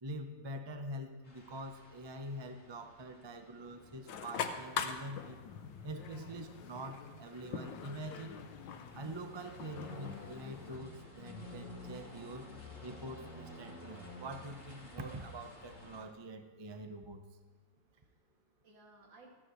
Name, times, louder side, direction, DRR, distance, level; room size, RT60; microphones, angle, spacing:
voice 1, 0.0-5.4 5.8-8.4 8.9-12.5 12.8-17.2, right 1 dB, 25° right, 6 dB, 0.5 m, -45 dB
sound 1, 1.2-16.0, left 2 dB, 40° left, 2.7 m, -52 dB
sound 2, 4.1-10.8, left 6 dB, 90° left, 1.6 m, -43 dB
voice 2, 17.2-19.5, right 2 dB, 80° right, -2 dB, 3.2 m, -62 dB
26.0 x 9.7 x 3.2 m, 1.3 s
omnidirectional pair, 2.0 m